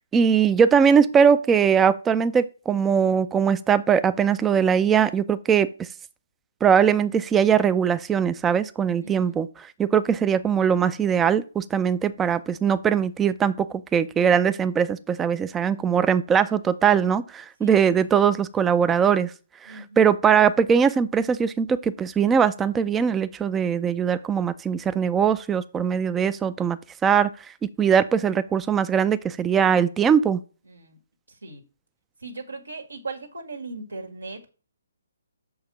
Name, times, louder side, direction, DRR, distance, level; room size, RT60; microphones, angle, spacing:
voice 1, 0.1-5.7 6.6-19.3 19.6-27.3 27.6-30.4, right 7 dB, 10° right, 14 dB, 0.4 m, -21 dB
voice 2, 9.0-9.4 17.6-18.1 19.7-20.1 30.7-31.0 31.3-31.6 32.2-34.5, right 3 dB, 80° right, 4 dB, 1.7 m, -38 dB
6.4 x 4.7 x 6.1 m, 0.36 s
figure-of-eight pair, 135°, 0 cm